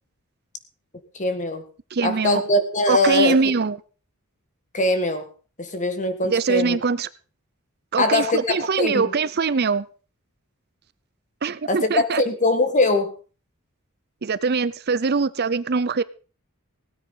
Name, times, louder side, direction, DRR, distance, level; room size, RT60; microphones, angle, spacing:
voice 1, 1.1-1.6 2.0-3.4 4.7-5.3 5.6-6.8 8.0-9.1 11.7-13.1, left 2 dB, 35° left, 1.8 m, -22 dB
voice 2, 1.9-2.4 2.9-3.8 6.3-7.1 7.9-9.8 11.4-12.2 14.2-16.0, right 4 dB, 50° right, 0.6 m, -22 dB
17.0 x 9.4 x 5.6 m
head